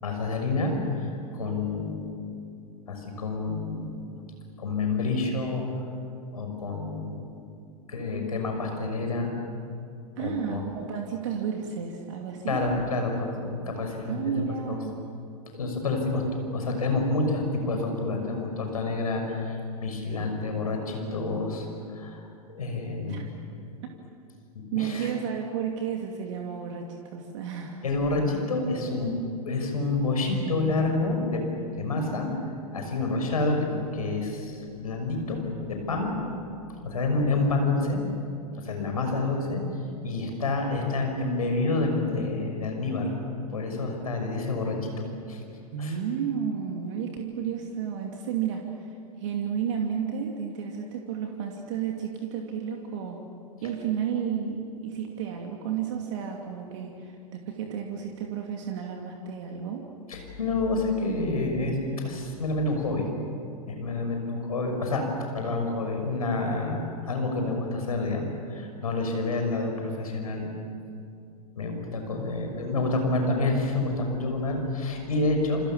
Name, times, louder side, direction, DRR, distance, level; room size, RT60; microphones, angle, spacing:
voice 1, 0.0-2.1 2.9-4.0 4.6-5.6 6.3-7.3 7.9-9.3 10.2-10.6 12.5-14.8 15.5-22.2 22.5-23.3 24.5-25.1 27.8-29.1 29.5-31.4 31.7-32.3 32.7-35.4 35.7-36.1 36.8-38.0 38.6-39.6 40.0-43.1 43.5-44.8 45.3-45.4 45.8-45.9 60.1-61.8 62.0-63.0 63.7-65.1 65.3-70.5 71.6-75.6, left 3 dB, 70° left, 3 dB, 6.2 m, -28 dB
voice 2, 10.2-12.6 14.1-15.0 23.1-23.2 24.7-27.8 45.7-48.7 49.2-53.3 53.6-59.9, right 7 dB, 50° right, 2 dB, 2.7 m, -32 dB
28.0 x 27.0 x 7.2 m, 2.5 s
figure-of-eight pair, 95°, 19 cm